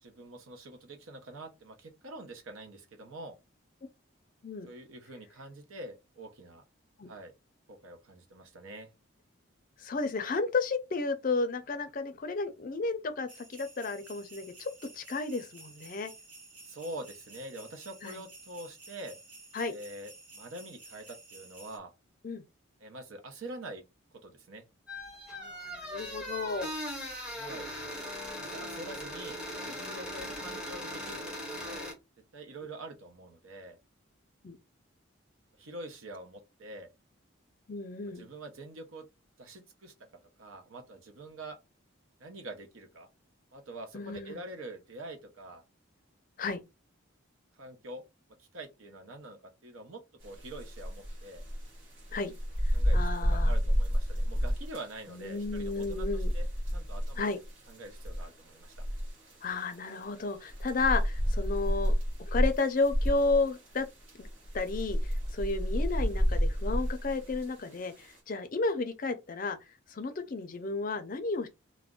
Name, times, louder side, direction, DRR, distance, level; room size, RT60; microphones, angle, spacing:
voice 1, 0.0-3.4 4.7-6.6 7.1-7.3 7.7-8.9 16.6-19.2 19.7-21.9 22.8-23.8 24.2-24.6 27.3-27.7 28.4-29.4 29.7-31.9 32.3-33.8 35.6-36.9 38.1-39.0 39.4-39.9 40.4-41.6 42.2-43.1 43.5-45.6 47.6-48.0 48.4-51.4 52.7-56.5 56.7-57.4 57.7-58.9, right 1 dB, 80° right, 0.7 m, -45 dB
voice 2, 9.8-14.7 14.9-16.1 18.0-18.2 19.5-19.7 22.2-22.4 25.3-26.7 34.4-34.6 37.7-38.3 43.9-44.4 46.4-46.6 52.1-52.3 52.9-53.5 55.1-56.3 57.2-57.4 59.4-61.9 62.2-63.9 64.2-64.3 64.5-69.6 69.9-71.5, left 3 dB, 40° left, 0.4 m, -32 dB
sound 1, 13.3-21.8, right 2 dB, 40° right, 1.0 m, -52 dB
sound 2, 24.9-31.9, equal, 5° right, 0.6 m, -39 dB
sound 3, 50.2-68.1, equal, 65° right, 1.0 m, -30 dB
2.4 x 2.0 x 3.6 m
head